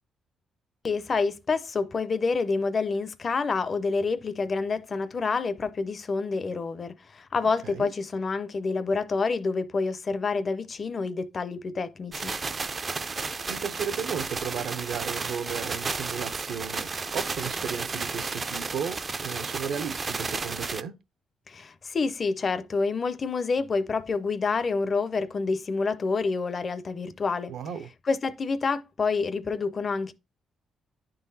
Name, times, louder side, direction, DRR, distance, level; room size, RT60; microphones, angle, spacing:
voice 1, 0.8-12.3 21.5-27.5 28.1-30.1, left 4 dB, 35° left, 0.4 m, -28 dB
sound 1, 12.1-20.8, right 4 dB, 30° right, 0.3 m, -33 dB
voice 2, 13.5-20.9 27.5-27.9, right 7 dB, 75° right, 0.6 m, -34 dB
9.6 x 3.8 x 2.7 m
cardioid pair, 130°, 0 cm